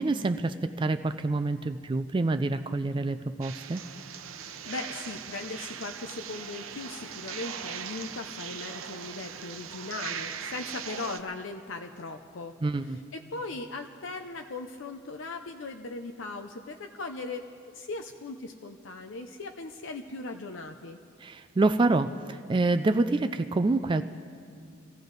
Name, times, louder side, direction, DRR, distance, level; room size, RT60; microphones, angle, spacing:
voice 1, 0.0-3.8 12.6-13.0 21.2-24.0, right 2 dB, 25° right, 9 dB, 0.3 m, -27 dB
sound 1, 3.4-11.2, right 8 dB, 90° right, 0.7 m, -40 dB
voice 2, 4.3-12.5 12.9-17.5 17.7-21.0, left 3 dB, 70° left, 5 dB, 0.6 m, -39 dB
23.5 x 15.0 x 4.0 m, 2.3 s
head